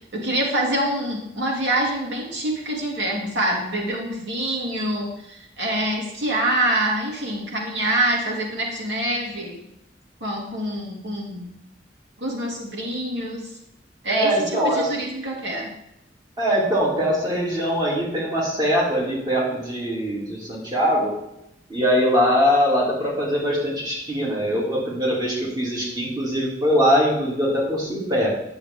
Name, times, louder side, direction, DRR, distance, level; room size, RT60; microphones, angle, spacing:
voice 1, 0.1-9.6 10.2-11.5 12.2-13.5 14.0-15.7, right 1 dB, 90° right, -3 dB, 2.5 m, -25 dB
voice 2, 14.1-14.9 16.4-21.2 21.7-28.3, equal, 25° right, -4 dB, 2.7 m, -22 dB
9.3 x 7.1 x 3.7 m, 0.83 s
head